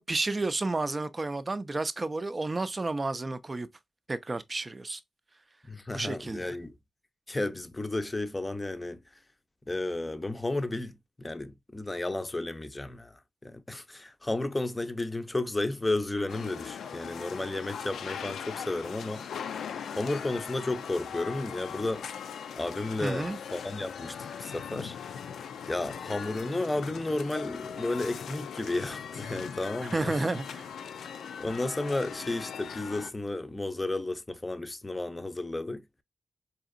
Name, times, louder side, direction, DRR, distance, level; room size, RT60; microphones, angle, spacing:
voice 1, 0.0-3.7 4.1-5.0 5.9-6.5 23.0-23.4 29.9-30.7, right 2 dB, 35° right, 0.5 m, -31 dB
voice 2, 5.7-6.7 7.3-9.0 9.7-19.2 19.9-22.0 22.6-25.0 25.7-30.2 31.4-35.8, left 2 dB, 20° left, 0.6 m, -33 dB
sound 1, 16.3-33.1, left 7 dB, 85° left, 0.4 m, -40 dB
4.0 x 2.8 x 2.5 m
cardioid pair, 55°, 0 cm